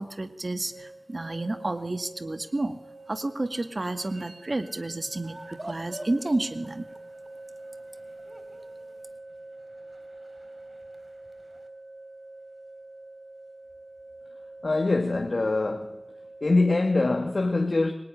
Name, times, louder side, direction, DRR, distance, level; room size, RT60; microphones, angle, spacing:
voice 1, 0.0-2.8 3.1-6.9, right 2 dB, 50° right, 2.0 m, -31 dB
sound 1, 0.7-17.4, right 2 dB, 85° right, 3.6 m, -46 dB
sound 2, 5.2-11.7, right 1 dB, 30° right, 3.9 m, -47 dB
voice 2, 14.6-16.0 16.4-17.9, left 2 dB, 65° left, 2.2 m, -24 dB
25.0 x 23.5 x 10.0 m
wide cardioid pair, 65°, 0 cm